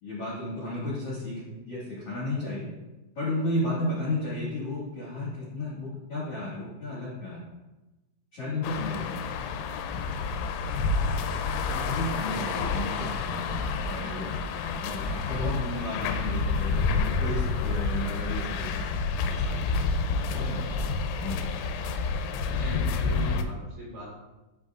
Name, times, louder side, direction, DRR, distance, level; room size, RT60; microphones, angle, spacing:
voice 1, 0.0-2.7 3.1-7.4 8.3-9.2 11.7-13.5 13.8-18.9 19.2-19.9 20.3-20.7 21.1-21.5, left 1 dB, 60° left, -7 dB, 1.6 m, -33 dB
sound 1, 8.6-23.4, left 4 dB, 90° left, 3.3 m, -29 dB
voice 2, 12.2-12.7 22.4-24.1, right 1 dB, 55° right, -7 dB, 2.9 m, -40 dB
13.0 x 4.6 x 2.5 m, 1.1 s
omnidirectional pair, 5.8 m